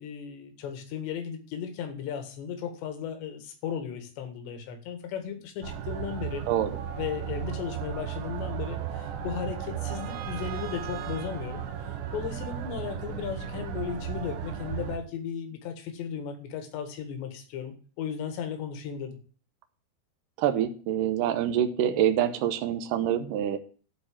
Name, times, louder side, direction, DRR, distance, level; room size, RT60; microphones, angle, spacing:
voice 1, 0.0-6.4 7.0-19.2, left 8 dB, 85° left, 6 dB, 4.0 m, -36 dB
sound 1, 5.6-15.0, right 9 dB, 90° right, 3.7 m, -35 dB
voice 2, 20.4-23.6, right 10 dB, 70° right, 7 dB, 2.1 m, -26 dB
12.5 x 4.7 x 8.6 m, 0.40 s
omnidirectional pair, 4.9 m